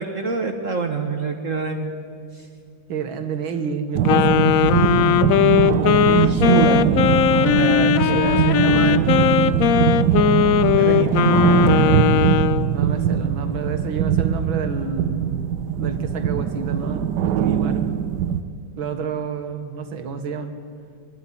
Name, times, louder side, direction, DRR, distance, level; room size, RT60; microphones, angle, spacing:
voice 1, 0.0-1.9 2.3-2.5 6.0-6.9 7.2-9.6 10.8-11.3, right 5 dB, 45° right, 5 dB, 1.3 m, -25 dB
voice 2, 2.9-4.4 7.8-8.6 11.4-15.3 15.8-17.9 18.8-20.6, right 5 dB, 80° right, 7 dB, 2.2 m, -29 dB
sound 1, 3.9-18.4, right 9 dB, 65° right, 1.2 m, -21 dB
Wind instrument woodwind instrument, 4.0-12.7, left 10 dB, 85° left, 0.7 m, -18 dB
22.0 x 12.5 x 10.0 m, 2.4 s
omnidirectional pair, 2.2 m